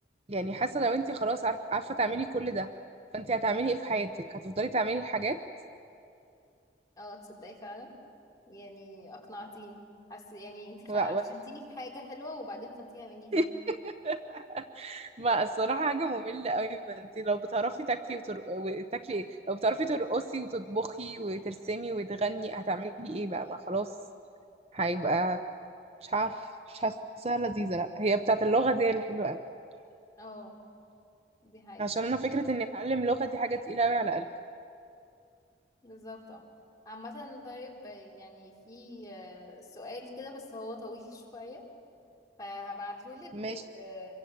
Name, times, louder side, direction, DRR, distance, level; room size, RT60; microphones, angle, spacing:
voice 1, 0.3-2.7 3.1-5.4 10.9-11.2 13.3-23.9 24.7-25.4 26.0-26.3 26.7-29.4 31.8-34.3 43.3-43.6, right 2 dB, 35° right, 9 dB, 0.7 m, -30 dB
voice 2, 7.0-7.9 8.5-9.8 10.1-13.4 30.2-30.6 31.4-31.9 35.8-36.4 36.8-41.6 42.4-44.1, left 1 dB, 20° left, -2 dB, 3.9 m, -44 dB
26.5 x 23.5 x 8.2 m, 2.5 s
head